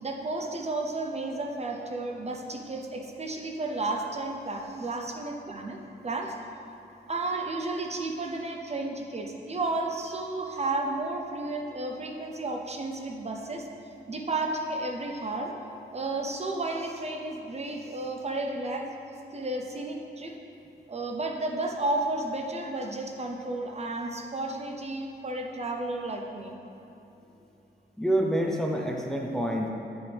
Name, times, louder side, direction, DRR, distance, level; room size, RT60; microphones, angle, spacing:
voice 1, 0.0-5.8 6.0-6.4 7.1-13.7 14.1-15.5 15.9-18.9 19.3-20.3 20.9-26.6, right 2 dB, 35° right, 1 dB, 0.7 m, -32 dB
voice 2, 28.0-29.7, right 1 dB, 5° left, 0 dB, 0.6 m, -27 dB
9.6 x 6.9 x 3.5 m, 2.9 s
wide cardioid pair, 140°, 19 cm